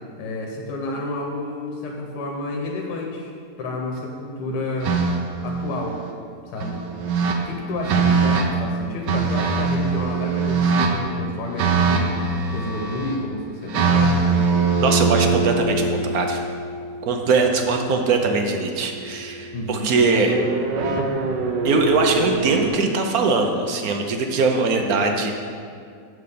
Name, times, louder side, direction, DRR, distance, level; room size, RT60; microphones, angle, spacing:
voice 1, 0.2-3.3 3.6-5.0 5.4-6.0 6.5-6.8 7.4-12.1 12.5-14.4 19.5-19.9, left 2 dB, 75° left, 0 dB, 1.5 m, -30 dB
sound 1, 4.8-6.1 6.6-7.4 7.8-8.5 9.1-10.9 11.6-13.2 13.7-17.8 20.3-22.7, right 4 dB, 85° right, 1.5 m, -22 dB
voice 2, 14.8-16.4 17.1-20.4 21.6-25.3, right 3 dB, 65° right, 3 dB, 1.1 m, -21 dB
7.8 x 4.8 x 6.8 m, 2.3 s
omnidirectional pair, 1.9 m